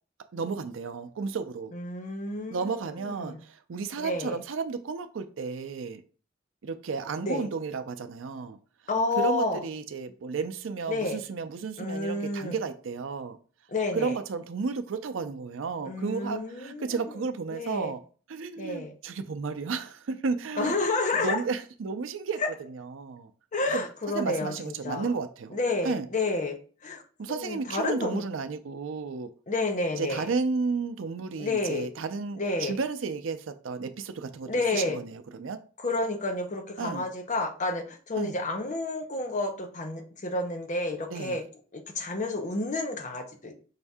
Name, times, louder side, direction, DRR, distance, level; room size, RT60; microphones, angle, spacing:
voice 1, 0.3-1.7 2.5-6.0 6.6-8.6 9.2-13.4 13.9-18.0 18.3-20.7 21.1-22.4 22.7-23.3 23.7-23.8 24.1-25.6 25.8-26.1 27.2-29.3 30.0-35.6 36.8-37.1 38.2-38.3 41.1-41.4, right 4 dB, 80° right, 0.5 m, -33 dB
voice 2, 1.7-2.7 3.0-3.4 4.0-4.4 7.2-7.5 8.9-9.6 10.9-11.2 11.8-12.6 13.7-14.1 15.8-17.1 17.5-17.9 18.6-18.9 20.6-21.4 22.4-22.5 23.5-25.1 25.5-26.6 26.8-27.0 27.4-28.2 29.5-30.3 31.4-31.9 32.4-32.8 34.5-35.0 35.8-41.4 41.7-43.5, left 2 dB, 40° left, 0.8 m, -30 dB
5.7 x 2.7 x 3.5 m
head